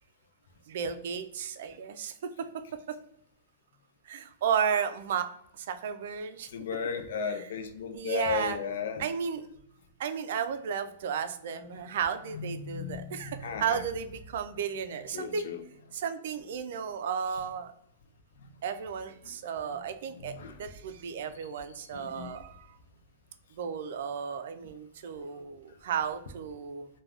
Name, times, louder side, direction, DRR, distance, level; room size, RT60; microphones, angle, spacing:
voice 1, 0.7-3.0 4.1-6.5 7.4-7.5 7.9-8.6 9.0-9.5 10.0-15.5 15.9-17.7 18.6-22.8 23.6-26.9, right 7 dB, 60° right, 9 dB, 0.3 m, -34 dB
voice 2, 6.5-9.1 12.3-13.8 15.1-15.6 19.2-19.3 19.7-19.8 20.2-20.6 21.9-22.3, left 6 dB, 70° left, 7 dB, 0.4 m, -35 dB
3.3 x 2.2 x 2.3 m, 0.75 s
hypercardioid pair, 155°, 0 cm